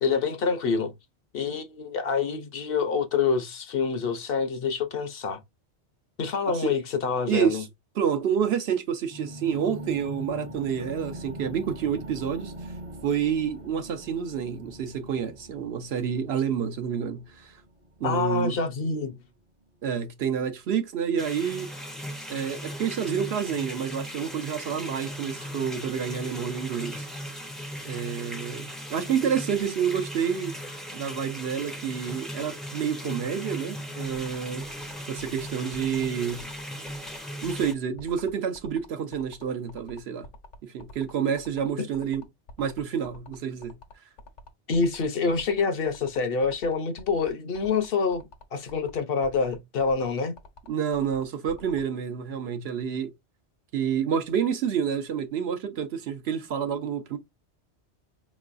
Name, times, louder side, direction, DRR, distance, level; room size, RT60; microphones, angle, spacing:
voice 1, 0.0-0.9 1.3-5.4 6.2-7.6 18.0-19.2 41.8-41.9 44.7-50.3, left 5 dB, 60° left, 0.8 m, -26 dB
voice 2, 7.3-7.7 8.0-12.5 13.0-17.5 18.0-18.6 19.8-21.7 22.3-27.1 27.8-30.5 30.9-34.6 35.1-36.5 37.4-40.3 40.7-42.2 42.6-43.8 50.7-53.1 53.7-57.2, right 7 dB, 65° right, 0.9 m, -28 dB
sound 1, 9.1-19.1, right 1 dB, 35° right, 0.7 m, -42 dB
sound 2, 21.2-37.7, equal, ahead, 0.4 m, -38 dB
sound 3, 34.0-51.8, left 2 dB, 85° left, 1.2 m, -47 dB
4.5 x 3.1 x 2.4 m
omnidirectional pair, 1.2 m